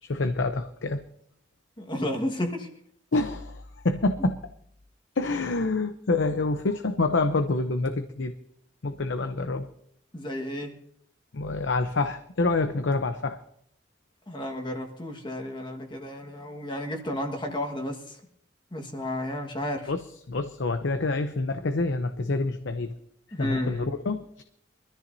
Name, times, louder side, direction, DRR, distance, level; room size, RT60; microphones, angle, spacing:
voice 1, 0.0-1.0 3.1-4.4 5.2-8.3 8.8-9.7 11.3-13.4 19.9-23.0 23.4-24.4, left 3 dB, 80° left, 8 dB, 0.7 m, -27 dB
voice 2, 1.8-2.7 10.1-10.8 14.3-18.2 18.7-19.9 23.3-23.9, left 1 dB, 25° left, 3 dB, 1.6 m, -32 dB
23.5 x 13.5 x 2.7 m, 0.69 s
head